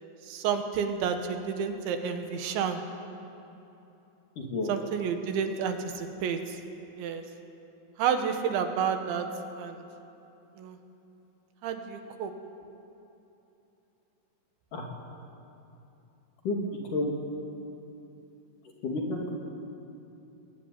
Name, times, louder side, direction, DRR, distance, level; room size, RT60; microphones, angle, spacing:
voice 1, 0.3-2.8 4.7-6.6 7.0-7.2 8.0-9.3 9.6-9.8 10.6-10.8 11.6-12.3, right 7 dB, 80° right, 6 dB, 3.8 m, -30 dB
voice 2, 4.4-4.7 14.7-14.9 16.4-16.7 16.9-17.1 18.8-19.3, left 2 dB, 50° left, 0 dB, 3.7 m, -30 dB
22.0 x 21.0 x 9.8 m, 2.9 s
omnidirectional pair, 5.3 m